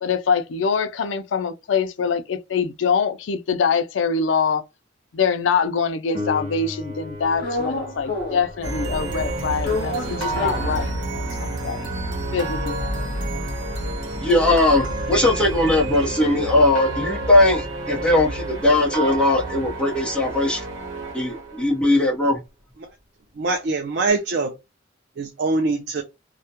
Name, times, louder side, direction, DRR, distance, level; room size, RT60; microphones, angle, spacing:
voice 1, 0.0-4.6 5.1-11.0 11.3-11.9 12.3-13.1, left 6 dB, 80° left, 0.4 m, -24 dB
Piano, 6.1-16.5 24.1-24.2, left 2 dB, 40° right, 1.0 m, -40 dB
sound 1, 7.4-8.6 8.9-11.5 11.9-12.0 12.1-16.6 17.0-21.0, left 2 dB, 50° left, 0.8 m, -33 dB
sound 2, 8.6-21.9, right 2 dB, 80° right, 0.9 m, -29 dB
voice 2, 14.2-20.6 21.1-22.4, left 2 dB, 5° left, 0.7 m, -19 dB
voice 3, 23.4-24.5 25.2-26.0, right 3 dB, 60° right, 0.4 m, -23 dB
2.3 x 2.1 x 2.7 m
head